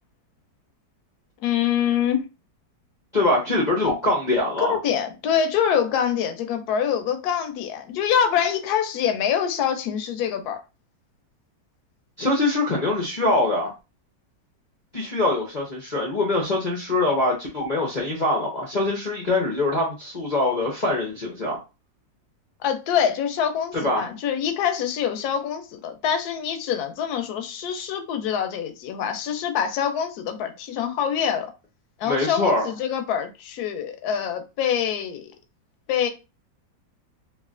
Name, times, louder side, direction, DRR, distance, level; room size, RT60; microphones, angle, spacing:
voice 1, 1.4-2.3 4.6-10.6 22.6-31.5 32.0-35.3 35.9-36.1, left 8 dB, 70° left, 1.0 m, -25 dB
voice 2, 3.1-4.8 12.2-13.7 14.9-21.6 23.8-24.0 32.0-32.7, left 2 dB, 55° left, 0.5 m, -23 dB
3.0 x 2.5 x 2.4 m
omnidirectional pair, 1.9 m